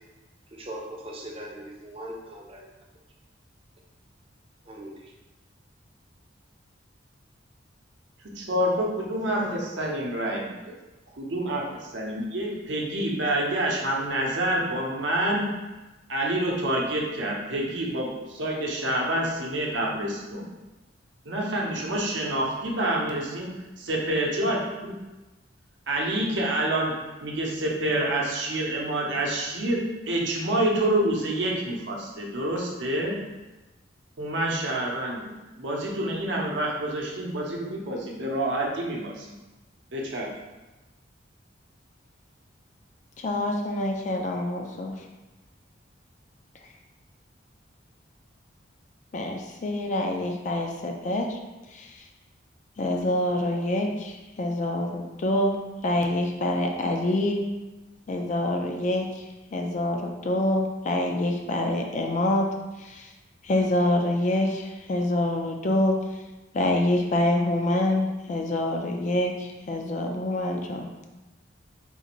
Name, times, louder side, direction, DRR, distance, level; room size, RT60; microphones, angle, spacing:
voice 1, 0.5-2.7 4.7-5.1, right 1 dB, 30° right, -1 dB, 0.5 m, -40 dB
voice 2, 8.4-10.7 11.2-15.5 16.1-20.5 21.2-23.5 23.8-25.0 25.9-26.9 27.2-33.2 34.2-35.3 35.6-39.3 39.9-40.3, right 1 dB, 70° right, -2 dB, 0.7 m, -27 dB
voice 3, 43.2-44.9 49.1-51.4 51.7-52.0 52.8-55.6 55.8-57.4 58.1-59.1 59.5-62.5 62.8-63.1 63.4-66.0 66.5-70.9, left 1 dB, 40° left, 2 dB, 0.3 m, -26 dB
3.8 x 2.5 x 3.0 m, 1.1 s
head